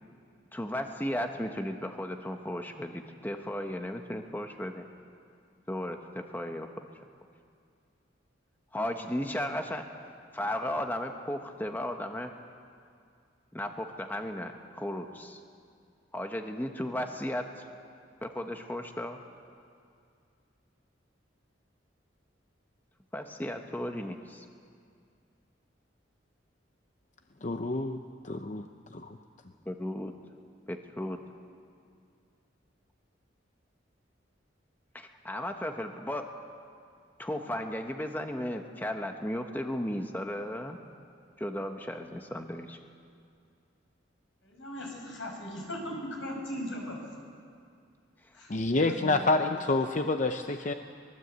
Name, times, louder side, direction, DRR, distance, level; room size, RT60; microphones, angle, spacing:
voice 1, 0.5-4.9 5.7-6.8 8.7-9.8 10.3-12.3 13.5-15.4 16.1-17.5 18.2-19.2 23.1-24.5 29.6-30.1 30.7-31.2 34.9-36.2 37.2-40.8 41.4-42.8, left 1 dB, 10° left, 4 dB, 1.0 m, -35 dB
voice 2, 27.4-28.7 28.9-29.2 48.5-50.7, left 2 dB, 40° left, 6 dB, 0.7 m, -28 dB
voice 3, 44.4-47.0 48.3-48.5 48.9-49.3, equal, 85° left, 0 dB, 6.2 m, -38 dB
23.5 x 20.5 x 8.1 m, 2.3 s
head